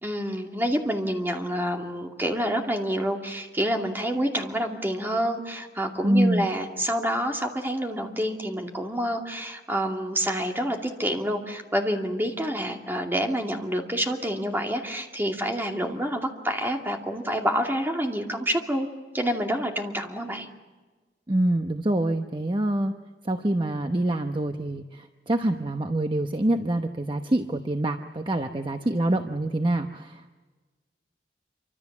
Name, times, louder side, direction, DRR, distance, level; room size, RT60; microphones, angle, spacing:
voice 1, 0.0-18.9 19.1-20.5, equal, 10° right, 2 dB, 2.5 m, -28 dB
voice 2, 6.0-6.5 21.3-22.9 23.2-30.3, right 1 dB, 30° right, 6 dB, 1.0 m, -25 dB
27.0 x 25.0 x 7.3 m, 1.3 s
head